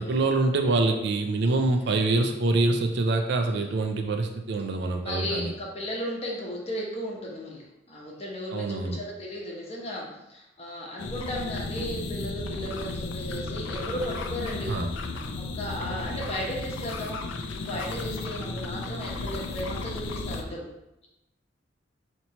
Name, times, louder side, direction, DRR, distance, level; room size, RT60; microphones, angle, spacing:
voice 1, 0.0-5.5 8.5-9.0 14.7-14.9 15.9-16.3, right 2 dB, 60° right, 4 dB, 0.4 m, -25 dB
voice 2, 1.4-2.0 3.4-3.7 5.0-10.0 10.3-14.7 15.4-17.3 17.7-20.7, equal, 35° left, -3 dB, 0.8 m, -35 dB
sound 1, 11.0-20.4, left 3 dB, 75° left, 0.4 m, -34 dB
4.3 x 2.9 x 2.8 m, 0.90 s
head